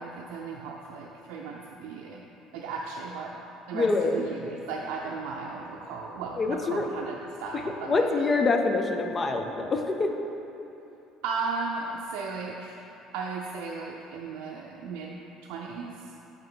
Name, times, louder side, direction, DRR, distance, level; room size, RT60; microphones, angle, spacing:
voice 1, 0.0-2.2 2.5-3.4 3.7-8.0 11.2-12.8 13.1-16.1, right 4 dB, 85° right, -2 dB, 0.5 m, -36 dB
voice 2, 3.7-4.2 6.4-6.9 7.5-7.6 7.9-10.1, left 3 dB, 25° left, 4 dB, 0.5 m, -25 dB
6.4 x 5.5 x 3.8 m, 3.0 s
cardioid pair, 135°, 0 cm